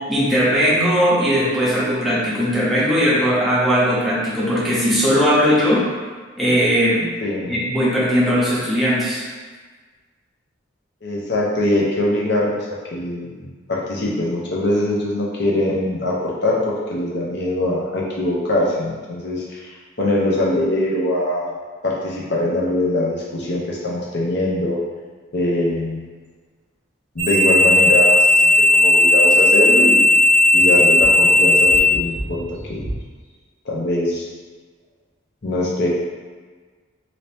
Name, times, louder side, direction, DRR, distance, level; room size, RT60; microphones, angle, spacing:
voice 1, 0.1-5.8 6.4-7.1 7.5-9.2, equal, ahead, -9 dB, 0.8 m, -18 dB
voice 2, 7.2-7.5 11.0-12.6 12.9-21.5 21.8-24.8 25.3-26.0 27.1-30.1 30.5-32.4 32.7-32.8 33.6-34.2 35.4-35.9, left 1 dB, 55° left, -4 dB, 0.7 m, -22 dB
sound 1, 27.2-33.0, left 1 dB, 30° right, 0.7 m, -15 dB
2.8 x 2.8 x 3.3 m, 1.4 s
head